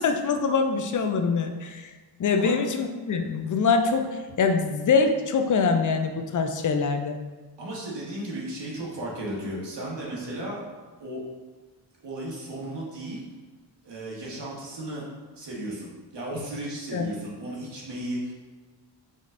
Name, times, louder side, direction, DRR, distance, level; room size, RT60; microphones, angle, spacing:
voice 1, 0.0-1.9 2.2-7.2 16.9-17.0, left 5 dB, 45° left, 5 dB, 0.4 m, -24 dB
voice 2, 7.6-10.6 11.0-11.2 12.0-13.2 13.8-15.0 15.3-18.3, right 1 dB, 60° right, -5 dB, 1.4 m, -34 dB
5.1 x 3.1 x 2.5 m, 1.3 s
wide cardioid pair, 110°, 46 cm